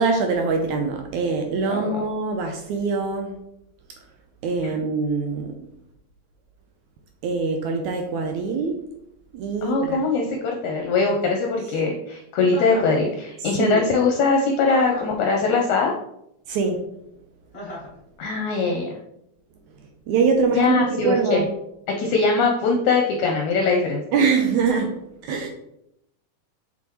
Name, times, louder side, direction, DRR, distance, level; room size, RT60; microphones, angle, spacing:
voice 1, 0.0-3.4 4.4-5.6 7.2-8.8 9.3-10.0 13.6-13.8 16.5-16.9 20.1-21.5 24.1-25.0 25.2-25.5, right 4 dB, 80° right, 4 dB, 1.8 m, -23 dB
voice 2, 1.7-2.0 4.6-4.8 9.6-15.9 18.2-18.9 20.5-21.4 22.0-24.0, left 4 dB, 75° left, 1 dB, 2.0 m, -21 dB
Chuckle chortle, 12.5-13.0 14.6-15.2 17.5-18.0, left 1 dB, 35° left, 0.9 m, -35 dB
6.0 x 6.0 x 3.0 m, 0.79 s
omnidirectional pair, 3.8 m